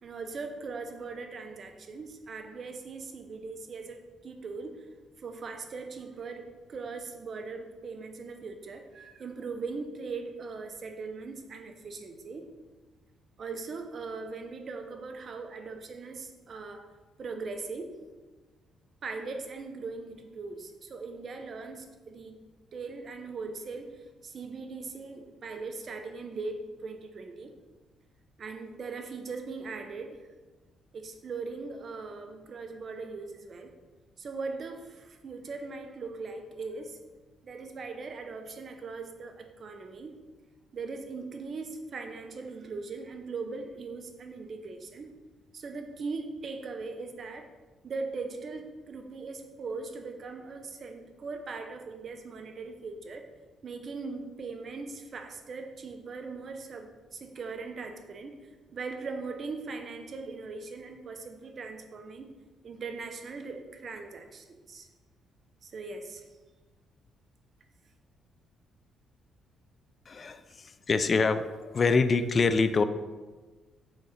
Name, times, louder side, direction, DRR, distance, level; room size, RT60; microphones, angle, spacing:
voice 1, 0.0-4.9 5.2-12.4 13.4-16.9 17.2-17.9 19.0-22.4 22.7-27.5 28.4-30.2 30.9-33.7 34.2-37.0 37.4-40.1 40.7-45.1 45.5-47.5 47.8-53.3 53.6-62.3 62.6-64.9 65.6-66.2, right 4 dB, 50° right, 6 dB, 0.8 m, -40 dB
voice 2, 70.1-72.8, left 4 dB, 40° left, 11 dB, 0.4 m, -25 dB
6.4 x 5.0 x 4.2 m, 1.3 s
cardioid pair, 90°, 0 cm